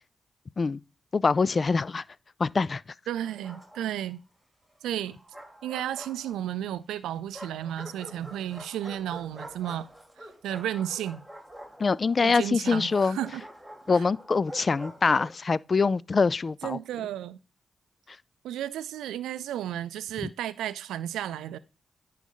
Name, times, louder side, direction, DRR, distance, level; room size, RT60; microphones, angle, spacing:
voice 1, 1.1-2.0 2.4-2.8 11.8-13.2 13.9-16.8 20.2-20.3, left 4 dB, 50° left, 0.3 m, -24 dB
voice 2, 3.1-4.2 4.8-5.2 5.6-9.9 10.2-11.2 12.2-13.4 14.0-14.1 16.6-17.4 18.4-21.6, right 11 dB, 90° right, 0.4 m, -33 dB
Bark, 3.2-4.1 5.0-6.6 7.3-15.5, equal, 10° right, 2.9 m, -46 dB
10.0 x 4.2 x 3.8 m
supercardioid pair, 40°, 0 cm